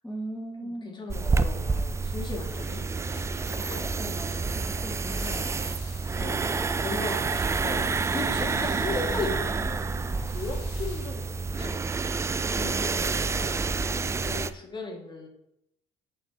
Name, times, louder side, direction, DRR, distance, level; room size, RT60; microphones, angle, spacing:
voice 1, 0.0-1.0 3.8-6.0 12.5-13.2, equal, 5° left, -2 dB, 1.0 m, -39 dB
voice 2, 0.6-2.8 6.2-11.8 12.8-15.3, left 3 dB, 30° left, 1 dB, 1.8 m, -37 dB
sound 1, 1.1-14.5, right 4 dB, 15° right, 0.3 m, -28 dB
sound 2, 2.0-12.3, left 3 dB, 70° left, 2.3 m, -51 dB
6.5 x 3.9 x 6.1 m, 0.80 s
cardioid pair, 105°, 17 cm